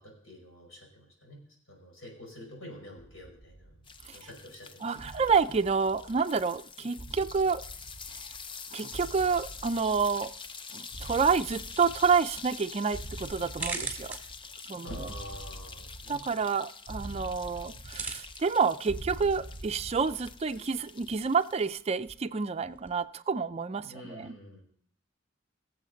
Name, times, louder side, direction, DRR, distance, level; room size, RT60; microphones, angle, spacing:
voice 1, 0.0-1.4 1.7-3.8 4.1-5.1 14.8-16.2 23.8-24.6, equal, 85° left, 0 dB, 5.4 m, -47 dB
sound 1, 3.0-4.3 5.0-6.5 7.0-8.6 8.9-10.5 10.9-12.6 12.9-14.5 14.9-16.5 16.9-18.5 18.9-20.5, right 1 dB, 50° left, 3.1 m, -45 dB
sound 2, 3.9-21.7, left 5 dB, 25° left, 0.5 m, -46 dB
voice 2, 4.8-7.6 8.7-10.3 10.7-14.2 14.7-14.9 16.1-24.4, right 5 dB, 30° right, 12 dB, 0.4 m, -28 dB
sound 3, 13.3-23.0, right 3 dB, 10° right, 2.1 m, -45 dB
21.5 x 7.6 x 3.9 m, 0.62 s
head